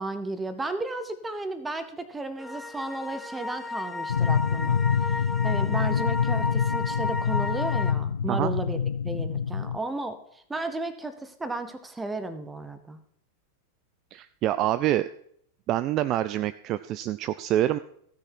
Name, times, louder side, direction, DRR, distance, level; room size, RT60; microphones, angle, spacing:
voice 1, 0.0-4.8 5.4-8.8 9.0-13.0, right 2 dB, 10° right, 11 dB, 1.0 m, -34 dB
sound 1, 2.4-7.9, left 3 dB, 5° left, 0.7 m, -34 dB
sound 2, 4.1-9.8, left 7 dB, 70° left, 0.4 m, -26 dB
voice 2, 14.1-15.1 15.7-17.8, right 13 dB, 35° right, 13 dB, 0.3 m, -26 dB
15.0 x 6.4 x 4.5 m, 0.67 s
figure-of-eight pair, 90°, 0 cm